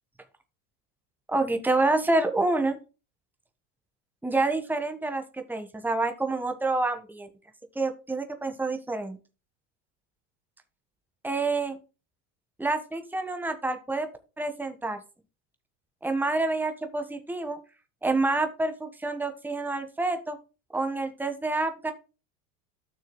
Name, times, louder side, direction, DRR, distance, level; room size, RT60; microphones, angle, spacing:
voice 1, 1.3-2.8 4.2-7.3 7.7-9.2 11.2-11.8 12.6-14.1 14.4-15.0 16.0-17.6 18.0-20.4 20.7-21.9, right 2 dB, 5° right, 6 dB, 1.4 m, -27 dB
13.0 x 6.3 x 2.2 m, 0.32 s
hypercardioid pair, 80°, 45 cm